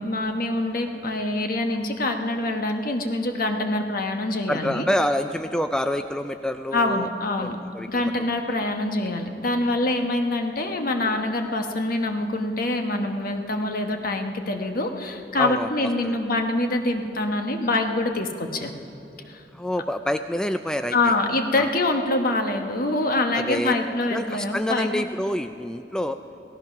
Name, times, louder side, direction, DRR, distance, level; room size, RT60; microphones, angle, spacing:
voice 1, 0.0-4.8 6.7-7.6 7.9-18.7 19.3-19.4 20.9-25.0, left 2 dB, 55° left, 5 dB, 1.2 m, -25 dB
voice 2, 4.5-7.1 7.4-8.1 8.6-8.7 15.4-16.2 19.5-21.1 21.5-21.7 23.3-23.8 24.1-26.2, equal, 5° left, 8 dB, 0.3 m, -27 dB
17.0 x 13.5 x 5.9 m, 2.9 s
head